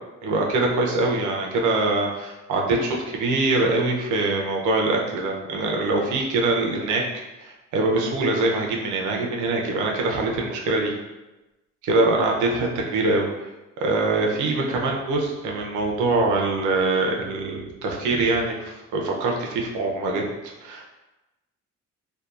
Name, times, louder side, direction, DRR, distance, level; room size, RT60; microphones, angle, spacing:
voice 1, 0.2-7.0 7.4-10.9 11.8-13.3 13.8-20.2 20.6-20.9, right 2 dB, 80° right, 0 dB, 0.6 m, -23 dB
2.7 x 2.2 x 2.4 m, 1.0 s
cardioid pair, 90°, 30 cm